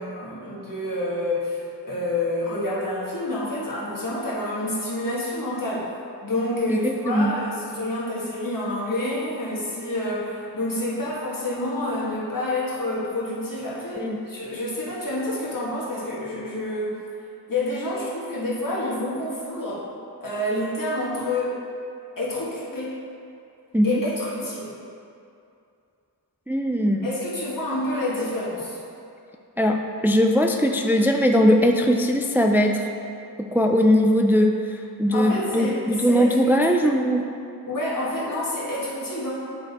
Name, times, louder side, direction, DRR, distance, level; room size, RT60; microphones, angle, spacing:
voice 1, 0.0-5.9 6.2-17.0 17.5-19.8 20.2-21.6 22.2-22.9 23.8-24.7 27.0-28.8 35.1-36.6 37.7-39.3, left 1 dB, 55° left, -8 dB, 1.7 m, -28 dB
voice 2, 6.7-7.3 14.0-14.2 23.7-24.0 26.5-27.1 29.6-32.8 33.4-34.5 35.0-37.2, equal, 5° right, 3 dB, 0.4 m, -20 dB
8.9 x 4.2 x 4.1 m, 2.5 s
wide cardioid pair, 55°, 39 cm